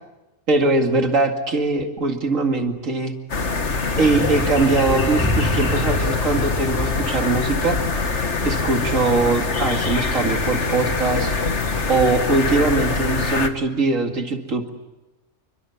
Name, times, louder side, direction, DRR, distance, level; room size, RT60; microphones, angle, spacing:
voice 1, 0.5-3.1 4.0-7.8 8.4-11.4 11.9-14.7, right 3 dB, 80° right, 3 dB, 2.6 m, -21 dB
sound 1, 3.3-13.5, left 4 dB, 60° left, 2.1 m, -23 dB
sound 2, 4.0-11.3, equal, 10° right, 5.2 m, -32 dB
29.0 x 24.0 x 8.5 m, 1.0 s
omnidirectional pair, 1.3 m